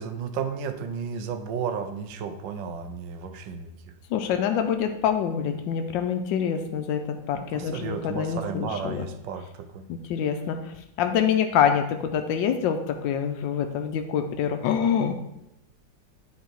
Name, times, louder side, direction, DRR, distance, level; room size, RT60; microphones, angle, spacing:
voice 1, 0.0-3.9 7.3-9.8, right 6 dB, 80° right, 8 dB, 1.4 m, -33 dB
voice 2, 4.1-7.0 7.3-9.1 9.9-10.6 11.0-15.1, left 8 dB, 90° left, 6 dB, 1.3 m, -25 dB
9.4 x 3.9 x 4.5 m, 0.85 s
omnidirectional pair, 2.0 m